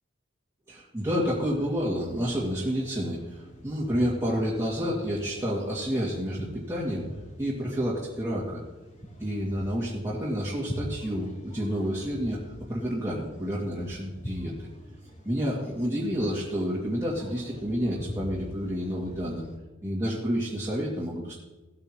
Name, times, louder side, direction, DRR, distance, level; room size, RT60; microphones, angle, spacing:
voice 1, 0.7-7.1 7.4-8.6 9.2-12.4 12.7-14.7 15.2-19.4 19.8-21.3, equal, 15° right, -7 dB, 2.3 m, -29 dB
sound 1, 1.0-19.6, equal, 40° left, 4.0 m, -44 dB
17.5 x 8.8 x 3.0 m, 1.2 s
head